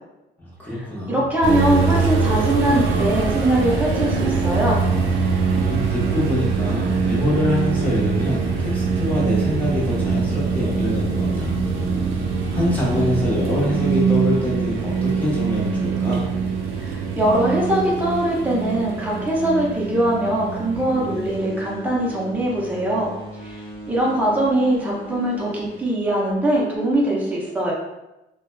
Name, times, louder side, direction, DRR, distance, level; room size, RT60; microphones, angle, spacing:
voice 1, 0.4-1.2 5.4-11.7 12.1-12.2 12.5-16.2, left 1 dB, 10° left, -7 dB, 1.0 m, -25 dB
voice 2, 1.1-4.8 16.7-23.1 23.4-27.7, right 1 dB, 10° right, -4 dB, 0.6 m, -22 dB
sound 1, 1.4-21.4, right 5 dB, 85° right, 0.4 m, -23 dB
sound 2, 20.7-26.8, right 1 dB, 25° left, 1.2 m, -37 dB
2.6 x 2.1 x 2.2 m, 0.95 s
cardioid pair, 90°, 20 cm